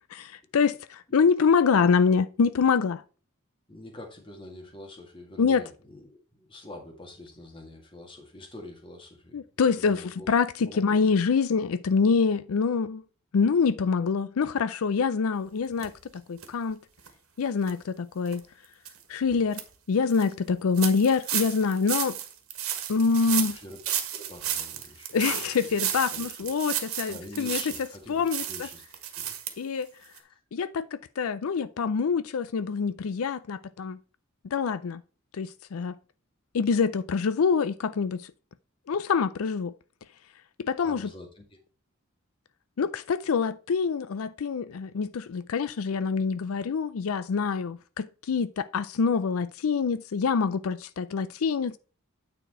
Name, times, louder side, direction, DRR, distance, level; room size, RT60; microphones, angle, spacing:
voice 1, 0.2-3.0 5.4-5.6 9.3-13.0 13.3-16.8 17.4-18.4 19.1-19.6 19.9-22.2 22.9-23.6 25.1-27.6 28.1-28.7 29.6-29.9 30.5-34.0 34.5-35.0 35.3-36.0 36.5-38.3 38.9-39.7 40.6-41.1 42.8-51.8, left 5 dB, 85° left, 0.4 m, -25 dB
voice 2, 3.7-9.4 9.7-10.3 10.6-11.0 23.2-25.2 25.4-26.5 27.0-28.8 29.2-29.7 40.8-41.6, left 1 dB, 25° left, 1.9 m, -46 dB
sound 1, 15.8-15.9 16.4-16.5 17.0-17.1 17.6-17.7 18.2-18.4 18.8-19.0 19.3-19.6 20.1-20.2 20.8-27.9 28.3-29.5 29.8-29.9 30.2-30.3, right 10 dB, 85° right, 1.5 m, -33 dB
9.2 x 4.3 x 4.3 m
head